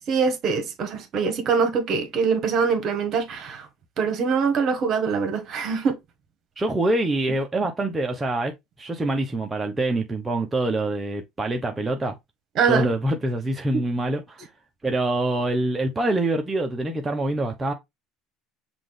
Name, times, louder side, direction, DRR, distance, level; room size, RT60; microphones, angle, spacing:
voice 1, 0.1-3.7 4.0-5.9 12.6-12.9, right 5 dB, 55° right, 1.4 m, -23 dB
voice 2, 6.6-12.1 12.7-14.4 14.8-17.7, right 2 dB, 20° right, 0.8 m, -25 dB
5.8 x 2.5 x 3.5 m
supercardioid pair, 95°, 0 cm